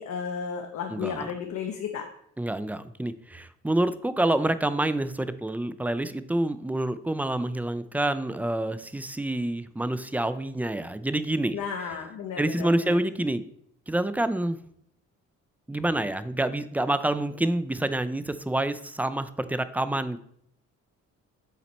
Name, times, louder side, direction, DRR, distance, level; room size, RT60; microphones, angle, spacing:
voice 1, 0.0-2.1 11.5-13.1, left 6 dB, 65° left, 3 dB, 0.8 m, -33 dB
voice 2, 0.9-1.3 2.4-11.6 12.4-13.4 13.9-14.6 15.7-20.2, right 1 dB, 5° right, 13 dB, 0.3 m, -27 dB
7.2 x 4.1 x 4.2 m, 0.70 s
cardioid pair, 90°, 30 cm